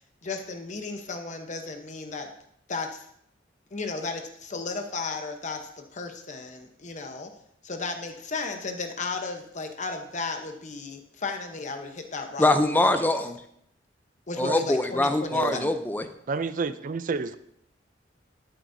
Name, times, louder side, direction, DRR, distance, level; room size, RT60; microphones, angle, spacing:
voice 1, 0.0-2.3 2.7-3.1 3.7-7.3 7.6-12.9 14.3-15.6, left 3 dB, 40° left, 5 dB, 0.9 m, -34 dB
voice 2, 12.4-13.4 14.4-16.0, left 2 dB, 10° left, 8 dB, 0.5 m, -23 dB
voice 3, 15.3-15.7 16.3-17.4, right 4 dB, 45° right, 14 dB, 0.4 m, -30 dB
12.0 x 7.9 x 2.7 m, 0.73 s
head